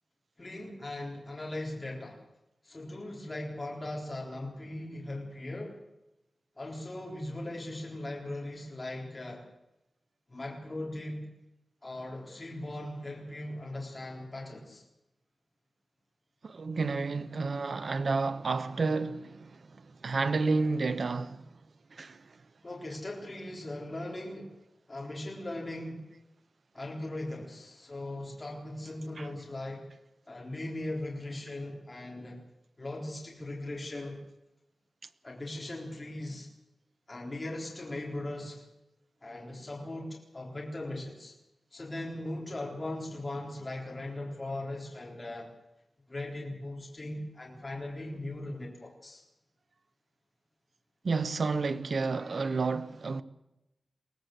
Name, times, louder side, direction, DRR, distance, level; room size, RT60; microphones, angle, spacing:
voice 1, 0.4-2.2 2.6-5.8 6.6-9.4 10.3-11.3 11.8-14.8 22.0-22.1 22.6-24.5 24.9-26.0 26.7-29.9 30.3-32.4 32.8-34.2 35.2-36.5 37.1-38.7 39.2-41.3 41.7-45.5 46.1-49.2, left 1 dB, 25° left, 4.1 m, -39 dB
voice 2, 16.4-19.5 20.0-21.4 21.9-22.2 29.2-29.3 51.0-53.2, right 4 dB, 55° right, 1.0 m, -30 dB
22.5 x 17.5 x 8.0 m
wide cardioid pair, 135°, 0 cm